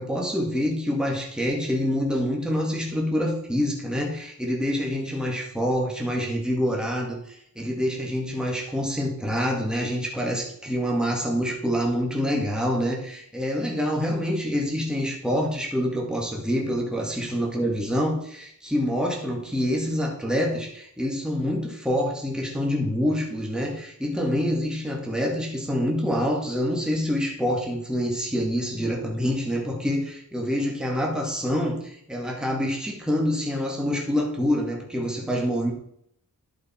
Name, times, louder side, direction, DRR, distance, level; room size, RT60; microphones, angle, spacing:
voice 1, 0.0-35.7, equal, ahead, -1 dB, 1.9 m, -26 dB
11.0 x 5.4 x 4.4 m, 0.71 s
wide cardioid pair, 70°, 35 cm